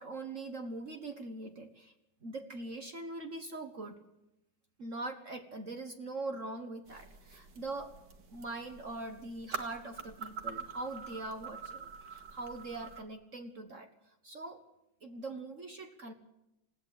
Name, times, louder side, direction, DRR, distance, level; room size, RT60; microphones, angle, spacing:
voice 1, 0.0-1.9 2.2-4.0 4.8-7.9 8.3-13.9 14.2-14.6 15.0-16.1, right 2 dB, 45° right, 6 dB, 1.7 m, -42 dB
sound 1, 6.9-13.0, right 5 dB, 65° right, 2.7 m, -45 dB
20.5 x 16.5 x 8.4 m, 0.90 s
omnidirectional pair, 2.0 m